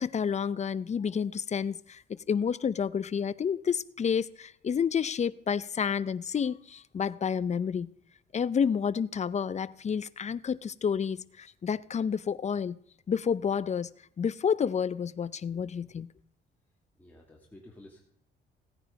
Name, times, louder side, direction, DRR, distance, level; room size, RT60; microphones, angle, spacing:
voice 1, 0.0-7.9 8.3-12.8 13.1-13.9 14.2-16.1, left 7 dB, 35° left, 0.6 m, -30 dB
voice 2, 17.0-18.0, left 1 dB, 10° left, 2.6 m, -52 dB
16.5 x 9.2 x 5.2 m
cardioid pair, 90°, 20 cm